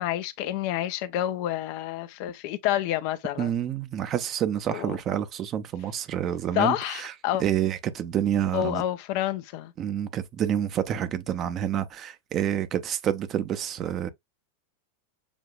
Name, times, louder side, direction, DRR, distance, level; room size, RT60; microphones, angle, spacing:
voice 1, 0.0-3.5 4.7-5.0 6.5-7.4 8.5-9.7, left 13 dB, 45° left, 0.6 m, -28 dB
voice 2, 3.4-7.1 7.4-8.8 9.8-14.1, right 10 dB, 30° right, 0.8 m, -28 dB
7.1 x 2.8 x 2.3 m
figure-of-eight pair, 90°, 0 cm